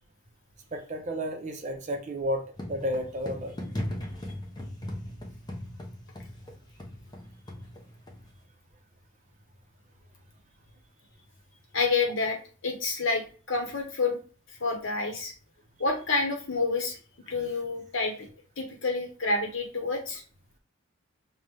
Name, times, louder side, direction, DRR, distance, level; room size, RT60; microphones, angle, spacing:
voice 1, 0.7-3.5 17.3-17.5, equal, 35° right, 4 dB, 0.6 m, -32 dB
sound 1, 2.5-8.4, left 1 dB, 20° left, 0.6 m, -38 dB
voice 2, 11.7-12.4 12.6-14.2 14.6-15.3 15.8-17.0 17.3-18.3 18.6-20.2, left 3 dB, 65° left, 3 dB, 1.0 m, -28 dB
5.2 x 2.2 x 3.2 m, 0.38 s
head